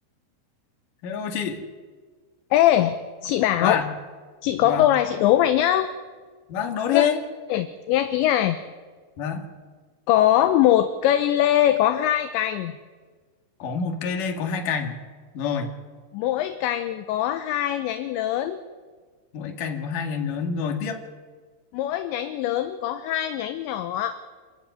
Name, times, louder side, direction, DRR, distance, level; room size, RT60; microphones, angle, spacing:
voice 1, 1.0-1.6 3.6-3.9 4.6-4.9 6.5-7.2 9.2-9.4 13.6-15.0 15.3-15.7 19.3-21.0, left 7 dB, 50° left, 4 dB, 3.2 m, -26 dB
voice 2, 2.5-3.0 3.2-3.8 4.4-5.9 6.9-7.1 7.5-8.6 10.1-12.8 16.1-18.6 21.7-24.2, left 12 dB, 75° left, 9 dB, 2.9 m, -22 dB
27.5 x 14.5 x 9.5 m, 1.5 s
omnidirectional pair, 5.7 m